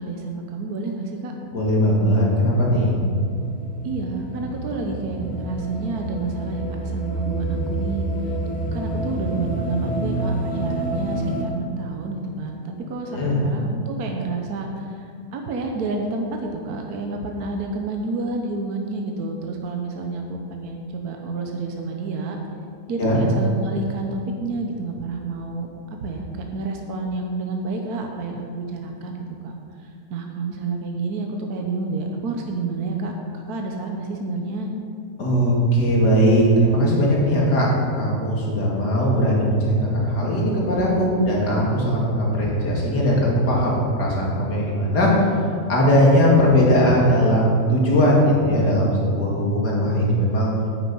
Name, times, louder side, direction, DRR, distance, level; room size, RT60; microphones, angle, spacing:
voice 1, 0.0-1.3 3.8-8.4 8.7-22.4 22.9-25.7 26.0-29.5 29.8-33.1 33.5-34.7, right 3 dB, 65° right, 2 dB, 1.4 m, -29 dB
voice 2, 1.5-3.0 13.1-13.4 23.0-23.2 35.2-37.7 37.9-43.2 43.5-45.1 45.7-50.5, equal, 75° left, -4 dB, 2.9 m, -19 dB
sound 1, 2.8-11.4, right 2 dB, 5° left, 0.9 m, -28 dB
9.8 x 9.1 x 5.5 m, 2.4 s
omnidirectional pair, 1.8 m